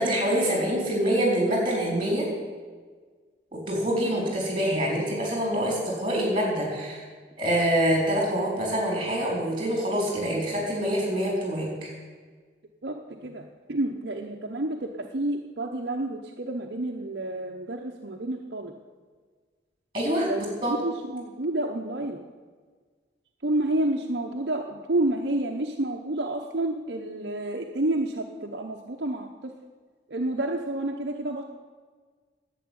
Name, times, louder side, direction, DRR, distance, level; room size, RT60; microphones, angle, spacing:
voice 1, 0.0-2.3 3.5-7.0 7.4-11.9 19.9-20.3 20.6-20.7, equal, 25° right, -1 dB, 4.3 m, -25 dB
voice 2, 12.8-18.7 20.2-22.2 23.4-29.5 30.1-31.4, right 1 dB, 60° right, 2 dB, 0.8 m, -29 dB
11.0 x 8.5 x 9.5 m, 1.5 s
head